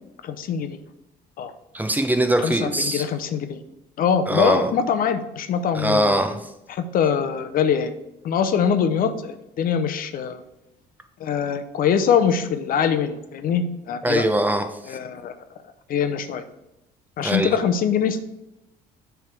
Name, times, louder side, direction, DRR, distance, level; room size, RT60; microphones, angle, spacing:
voice 1, 0.2-0.8 1.4-1.5 2.4-3.6 4.0-6.2 6.7-7.9 8.2-10.4 11.2-14.2 14.8-15.3 15.9-16.4 17.2-18.2, left 7 dB, 60° left, 10 dB, 0.7 m, -23 dB
voice 2, 1.7-3.0 4.3-4.7 5.7-6.4 14.0-14.7 17.2-17.5, right 1 dB, 10° right, 6 dB, 0.8 m, -21 dB
7.4 x 3.5 x 6.0 m, 0.89 s
cardioid pair, 110°, 17 cm